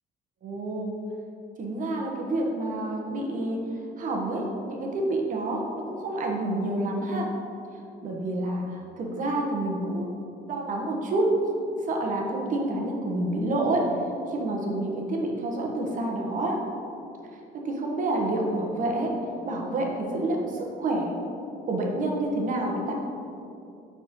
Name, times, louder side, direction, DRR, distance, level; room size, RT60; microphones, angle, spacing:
voice 1, 0.4-1.0 1.6-3.6 4.0-7.3 8.0-10.1 10.5-11.3 11.6-13.8 14.3-16.6 17.5-19.1 19.4-21.1 21.7-22.9, right 2 dB, 50° right, 0 dB, 1.2 m, -28 dB
8.9 x 4.3 x 3.7 m, 2.7 s
cardioid pair, 110°, 17 cm